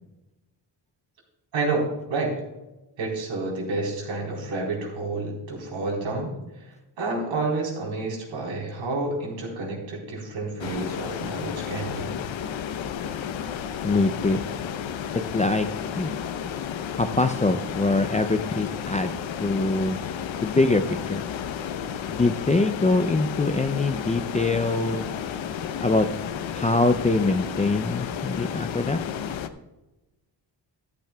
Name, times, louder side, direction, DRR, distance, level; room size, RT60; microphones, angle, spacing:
voice 1, 1.5-2.3 3.0-6.3 6.6-12.2, right 3 dB, 85° right, -2 dB, 4.0 m, -29 dB
sound 1, 10.6-29.5, left 8 dB, 80° left, 0.8 m, -32 dB
voice 2, 13.8-14.4 15.3-15.7 15.9-16.1 17.0-19.1 19.4-20.0 20.4-21.2 22.1-25.1 25.8-26.1 26.5-29.0, left 2 dB, 15° left, 8 dB, 0.4 m, -23 dB
13.5 x 12.0 x 2.3 m, 1.0 s
wide cardioid pair, 125°, 45 cm